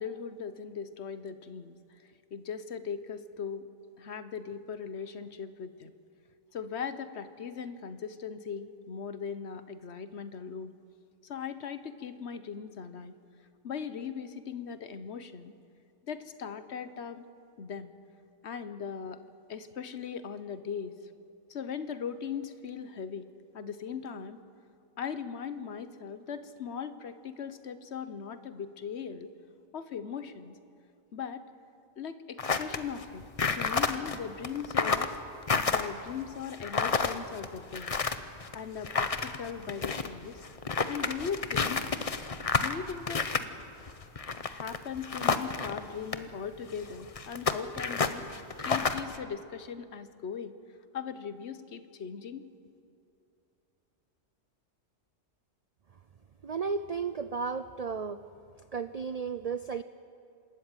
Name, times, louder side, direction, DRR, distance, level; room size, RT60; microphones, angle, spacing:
voice 1, 0.0-3.7 4.0-5.9 6.5-10.7 11.2-13.2 13.6-15.5 16.1-17.3 17.6-18.0 18.4-19.2 19.5-21.0 21.5-23.3 23.5-24.4 25.0-29.3 29.7-30.6 31.1-31.4 32.0-35.1 35.6-38.0 38.5-40.4 40.9-41.9 42.5-43.4 44.4-50.5 50.9-52.5, left 7 dB, 60° left, 12 dB, 1.2 m, -39 dB
sound 1, 32.4-45.8 46.1-46.2 46.8-49.2, left 4 dB, 35° left, 0.8 m, -30 dB
voice 2, 56.4-58.2 58.7-59.8, right 5 dB, 55° right, 12 dB, 0.4 m, -33 dB
27.0 x 13.5 x 9.0 m, 2.5 s
omnidirectional pair, 1.3 m